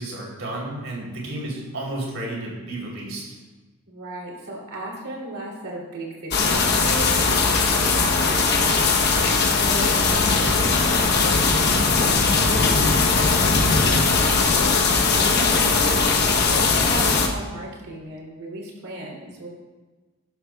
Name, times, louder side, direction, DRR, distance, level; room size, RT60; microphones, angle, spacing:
voice 1, 0.0-3.3 15.4-15.8, right 1 dB, 70° right, -3 dB, 3.3 m, -32 dB
voice 2, 3.9-9.3 9.6-15.8 16.5-19.5, right 1 dB, 85° right, -3 dB, 3.0 m, -36 dB
sound 1, 6.3-17.3, left 4 dB, 50° left, 1.0 m, -19 dB
11.5 x 11.5 x 2.3 m, 1.2 s
head